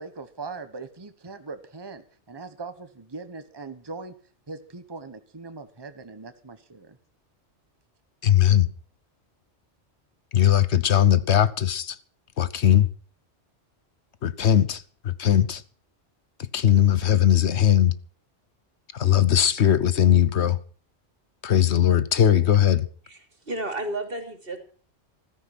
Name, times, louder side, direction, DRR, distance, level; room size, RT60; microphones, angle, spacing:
voice 1, 0.0-4.1 4.5-7.0, right 4 dB, 20° right, 1.3 m, -40 dB
voice 2, 8.2-8.7 10.3-12.0 12.4-12.9 14.2-15.6 16.5-17.9 18.9-20.6 21.4-22.9, left 10 dB, 75° left, 1.2 m, -19 dB
voice 3, 23.0-24.6, right 1 dB, 55° right, 3.1 m, -32 dB
15.0 x 13.5 x 6.1 m
omnidirectional pair, 1.2 m